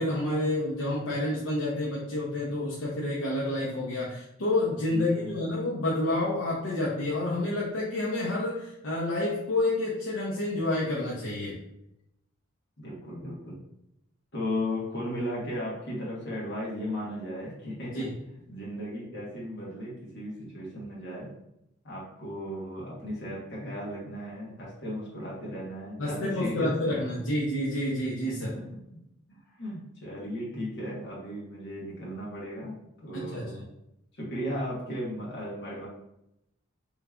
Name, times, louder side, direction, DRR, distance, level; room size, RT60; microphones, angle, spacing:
voice 1, 0.0-11.6 17.9-18.1 26.0-28.5 33.1-33.5, left 1 dB, 75° left, -5 dB, 0.7 m, -29 dB
voice 2, 4.9-5.4 12.8-13.6 14.3-18.1 18.5-21.3 21.8-27.3 28.4-28.8 29.3-33.6 34.1-35.9, equal, 55° left, -5 dB, 1.3 m, -36 dB
3.3 x 3.1 x 2.4 m, 0.83 s
head